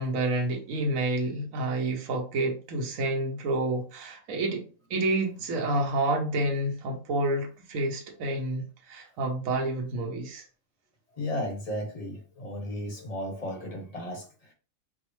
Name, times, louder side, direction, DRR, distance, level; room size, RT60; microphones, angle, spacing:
voice 1, 0.0-4.6 4.9-10.4, right 2 dB, 80° right, 1.2 m, -29 dB
voice 2, 11.1-14.5, left 1 dB, 35° left, 0.7 m, -34 dB
4.6 x 2.0 x 3.0 m
omnidirectional pair, 1.4 m